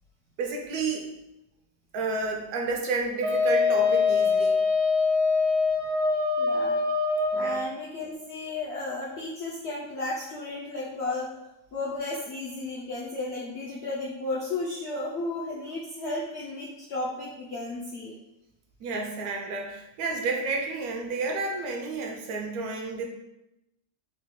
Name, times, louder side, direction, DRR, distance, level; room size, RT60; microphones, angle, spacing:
voice 1, 0.4-1.1 1.9-4.6 7.3-7.6 18.8-23.1, right 3 dB, 70° right, 2 dB, 1.0 m, -31 dB
Wind instrument woodwind instrument, 3.2-7.6, left 4 dB, 55° right, 0.7 m, -23 dB
voice 2, 6.4-6.8 7.3-11.3 11.7-18.1, left 2 dB, 65° left, -5 dB, 0.6 m, -33 dB
3.9 x 2.3 x 3.5 m, 0.90 s
omnidirectional pair, 1.7 m